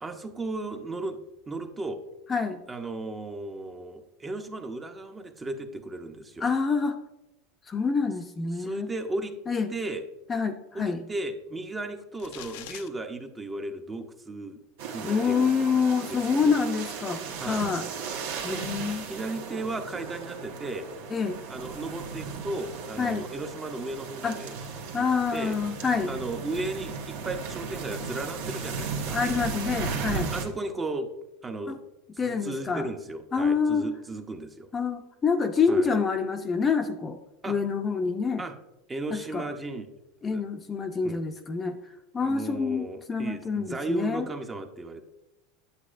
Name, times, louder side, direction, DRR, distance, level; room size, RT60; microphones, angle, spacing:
voice 1, 0.0-1.2 1.5-2.0 2.7-6.5 8.6-9.3 9.7-10.0 10.7-14.6 14.9-15.6 16.1-16.5 17.3-17.6 18.4-18.6 19.0-20.9 21.5-24.6 24.9-25.0 25.3-25.6 26.1-29.2 30.1-31.1 31.4-31.8 32.1-34.7 35.7-35.9 37.4-37.6 38.4-38.5 38.9-39.9 40.3-40.4 41.0-41.2 42.2-45.0, right 2 dB, 15° right, 6 dB, 0.7 m, -35 dB
voice 2, 2.3-2.6 6.4-7.0 7.7-8.9 9.5-9.7 10.3-11.0 15.0-17.2 17.5-17.9 18.4-19.1 21.1-21.4 23.0-23.2 24.2-24.4 24.9-26.1 29.1-30.3 31.7-31.8 32.2-32.9 33.3-33.9 34.7-37.2 37.5-38.4 39.1-39.4 40.2-41.8 42.1-44.3, left 5 dB, 20° left, 6 dB, 0.5 m, -27 dB
sound 1, 12.2-12.9, left 12 dB, 70° left, 0.5 m, -42 dB
sound 2, 14.8-30.4, right 5 dB, 75° right, 1.1 m, -36 dB
8.2 x 8.0 x 2.5 m, 0.93 s
supercardioid pair, 125°, 0 cm